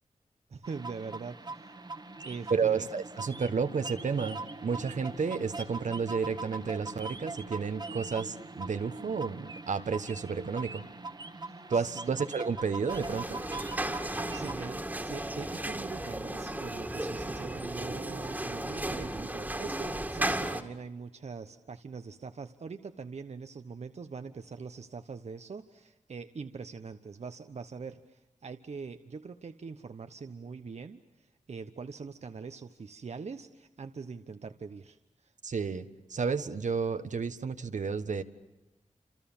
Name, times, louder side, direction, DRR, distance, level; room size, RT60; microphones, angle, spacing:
voice 1, 0.5-1.7 2.2-2.9 11.5-12.1 13.9-35.3, right 5 dB, 60° right, 8 dB, 1.1 m, -43 dB
sound 1, 0.6-14.5, right 3 dB, 35° right, 1.6 m, -42 dB
voice 2, 2.5-10.8 11.7-13.4 35.4-38.2, right 5 dB, 80° right, 9 dB, 1.5 m, -31 dB
sound 2, 12.9-20.6, right 1 dB, 15° right, 2.1 m, -35 dB
29.0 x 27.5 x 7.3 m, 0.95 s
wide cardioid pair, 120°, 12 cm